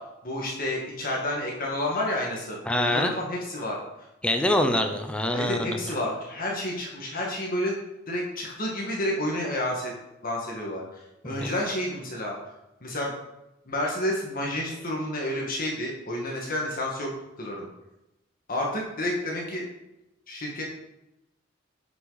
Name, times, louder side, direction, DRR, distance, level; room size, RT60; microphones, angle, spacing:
voice 1, 0.2-3.8 5.3-7.8 8.1-9.9 10.2-12.3 12.8-13.1 13.7-17.1 17.4-17.7 18.5-19.6 20.3-20.6, left 1 dB, 45° left, -2 dB, 1.7 m, -30 dB
voice 2, 2.7-3.1 4.2-5.8 11.3-11.5, left 1 dB, 5° left, 4 dB, 0.6 m, -25 dB
11.0 x 5.9 x 4.0 m, 0.93 s
head